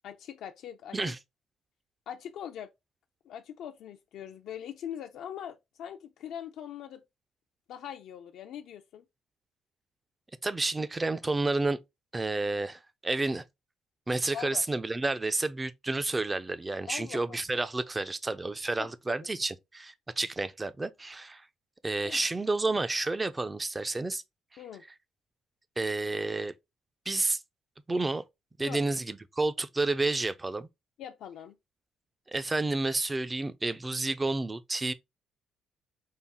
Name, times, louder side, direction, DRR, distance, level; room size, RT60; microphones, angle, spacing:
voice 1, 0.0-1.1 2.1-2.7 3.3-7.0 7.7-9.0 14.3-14.6 16.9-17.4 18.8-19.2 22.0-22.2 24.6-24.8 28.6-28.8 31.0-31.6, left 9 dB, 65° left, 0.4 m, -42 dB
voice 2, 10.4-11.8 12.1-13.4 14.1-21.4 21.8-24.2 25.8-26.5 27.1-27.4 27.9-28.2 28.6-30.7 32.3-34.9, right 2 dB, 15° right, 0.4 m, -30 dB
5.4 x 2.3 x 3.5 m
cardioid pair, 170°, 0 cm